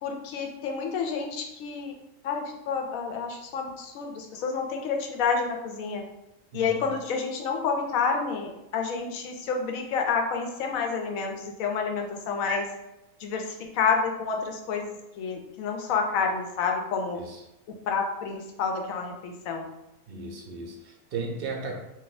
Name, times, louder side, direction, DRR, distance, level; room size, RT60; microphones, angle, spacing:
voice 1, 0.0-1.9 2.2-6.0 6.5-12.7 13.2-17.2 17.9-19.6, left 5 dB, 80° left, 3 dB, 1.0 m, -29 dB
voice 2, 6.5-6.9 17.2-17.4 20.1-21.7, right 4 dB, 60° right, 1 dB, 0.6 m, -36 dB
2.7 x 2.3 x 3.9 m, 0.89 s
omnidirectional pair, 1.5 m